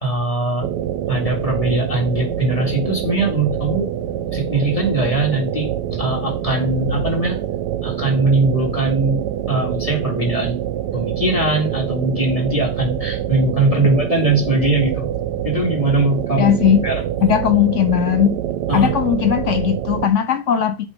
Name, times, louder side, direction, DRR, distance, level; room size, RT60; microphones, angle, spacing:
voice 1, 0.0-0.7 1.1-3.9 4.3-7.5 7.8-9.2 9.5-10.6 10.9-15.1 15.4-16.5 16.8-17.3 18.7-18.9, right 2 dB, 20° left, 2.1 m, -20 dB
sound 1, 0.6-20.1, right 11 dB, 75° right, 1.2 m, -25 dB
voice 2, 16.4-16.8 17.2-18.4 18.7-20.9, left 9 dB, 65° left, 0.7 m, -17 dB
8.5 x 3.0 x 5.1 m
omnidirectional pair, 1.9 m